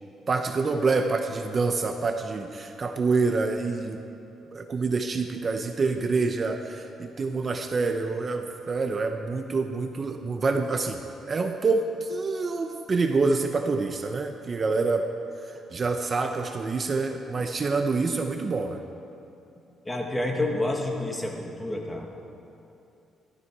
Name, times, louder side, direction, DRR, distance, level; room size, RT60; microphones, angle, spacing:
voice 1, 0.3-4.0 4.5-11.0 11.3-15.1 15.4-18.8, right 4 dB, 40° right, 5 dB, 0.8 m, -27 dB
voice 2, 19.9-22.1, left 1 dB, 15° left, 1 dB, 2.0 m, -29 dB
14.5 x 13.0 x 4.7 m, 2.9 s
cardioid pair, 90°, 0 cm